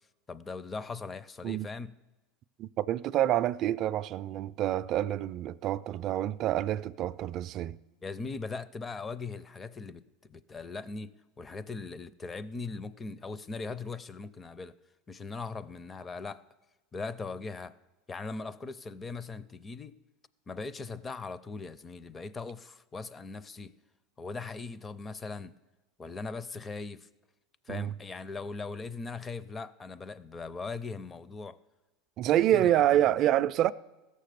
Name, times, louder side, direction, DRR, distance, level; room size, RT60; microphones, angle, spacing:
voice 1, 0.3-2.0 8.0-14.7 15.1-16.4 16.9-17.7 18.1-20.0 20.5-23.7 24.2-25.5 26.0-27.1 27.7-31.6 32.5-33.1, left 4 dB, 20° left, 0.5 m, -39 dB
voice 2, 2.6-7.8 27.7-27.9 32.2-33.7, right 12 dB, 50° right, 0.3 m, -27 dB
15.5 x 6.6 x 6.7 m
supercardioid pair, 115°, 0 cm